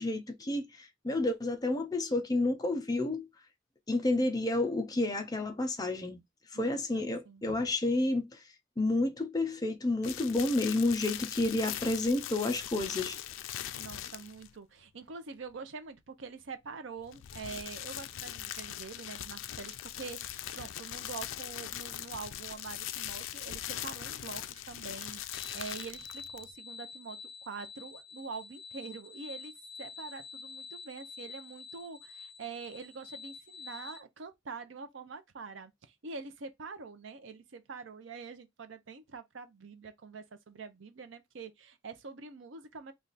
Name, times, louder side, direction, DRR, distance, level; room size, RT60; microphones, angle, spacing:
voice 1, 0.0-3.3 3.9-6.2 6.5-8.4 8.8-13.2, left 2 dB, 20° left, 0.5 m, -30 dB
voice 2, 6.5-7.7 13.8-29.5 29.8-42.9, right 4 dB, 70° right, 0.6 m, -45 dB
sound 1, 10.0-14.5 17.0-26.5, left 12 dB, 80° left, 0.4 m, -41 dB
sound 2, 25.3-34.0, left 5 dB, 55° left, 0.9 m, -48 dB
3.3 x 2.4 x 3.9 m
head